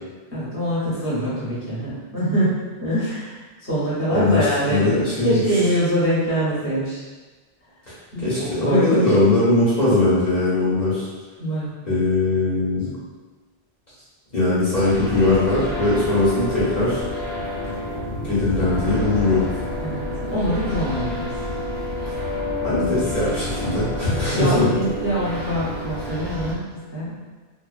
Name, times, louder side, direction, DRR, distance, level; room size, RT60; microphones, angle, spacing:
voice 1, 0.3-7.0 8.1-9.3 11.4-11.7 19.8-21.3 24.0-27.2, equal, 15° left, -10 dB, 0.8 m, -24 dB
voice 2, 4.1-5.6 7.9-11.1 11.8-12.9 14.3-17.0 18.2-19.4 22.6-24.6, left 2 dB, 45° left, -12 dB, 0.8 m, -20 dB
sound 1, 14.7-26.5, left 1 dB, 65° left, 1.0 m, -29 dB
2.4 x 2.1 x 2.4 m, 1.3 s
omnidirectional pair, 1.1 m